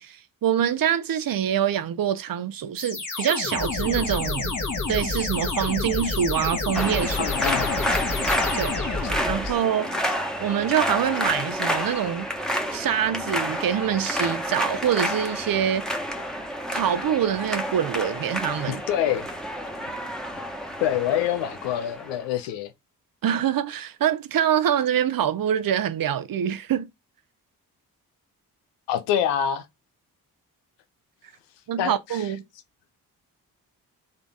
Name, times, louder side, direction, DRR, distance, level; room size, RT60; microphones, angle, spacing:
voice 1, 0.0-4.5 4.9-7.3 8.5-16.0 16.7-18.8 23.2-26.9 31.7-32.4, right 9 dB, 55° right, 0.8 m, -25 dB
sound 1, 2.8-9.6, left 3 dB, 45° left, 1.7 m, -28 dB
sound 2, 6.7-22.2, equal, ahead, 1.3 m, -29 dB
voice 2, 7.2-7.8 9.4-9.5 18.6-19.3 20.8-22.7 28.9-29.7 31.8-32.2, left 10 dB, 80° left, 0.8 m, -26 dB
3.8 x 3.8 x 3.6 m
hypercardioid pair, 40°, 42 cm